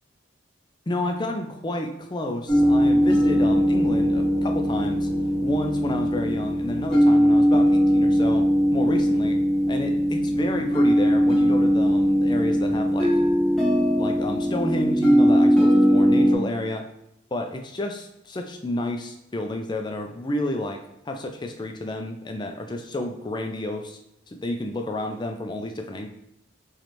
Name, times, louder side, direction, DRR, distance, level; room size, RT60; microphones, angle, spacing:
voice 1, 0.9-5.1 5.4-9.4 9.7-13.2 14.0-16.8 17.3-24.0 24.3-26.1, left 1 dB, 25° left, 5 dB, 0.4 m, -30 dB
sound 1, 2.5-16.3, equal, ahead, 0.9 m, -20 dB
3.9 x 3.2 x 3.0 m, 0.84 s
head